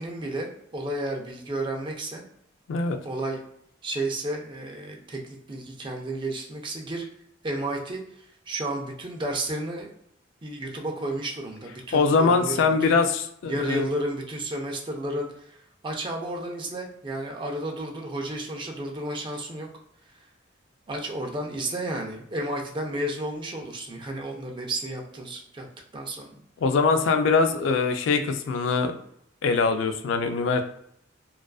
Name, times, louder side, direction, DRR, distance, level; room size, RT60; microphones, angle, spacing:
voice 1, 0.0-2.2 3.0-3.4 3.8-7.1 7.4-9.9 10.4-12.9 13.5-15.6 15.8-19.7 20.9-25.7 25.9-26.4, right 1 dB, 25° right, 1 dB, 0.4 m, -32 dB
voice 2, 2.7-3.0 11.9-13.8 26.6-29.0 29.4-30.6, left 4 dB, 75° left, 7 dB, 0.3 m, -22 dB
2.3 x 2.3 x 2.3 m, 0.71 s
head